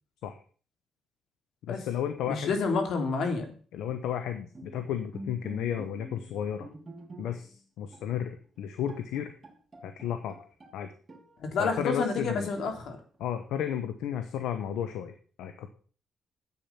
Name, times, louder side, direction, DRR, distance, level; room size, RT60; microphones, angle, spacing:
voice 1, 1.6-2.6 3.7-6.7 7.2-9.3 9.8-10.4 10.7-10.9 11.6-12.5 13.2-15.7, left 9 dB, 85° left, 9 dB, 1.0 m, -33 dB
voice 2, 2.2-3.5 11.4-13.0, left 4 dB, 70° left, 4 dB, 3.2 m, -29 dB
Bowed string instrument, 4.5-7.6 7.9-8.1 8.6-8.7 8.9-10.8 11.1-11.9 12.6-13.2, right 2 dB, 25° right, 2.8 m, -47 dB
11.0 x 8.6 x 5.8 m, 0.41 s
cardioid pair, 90°, 0 cm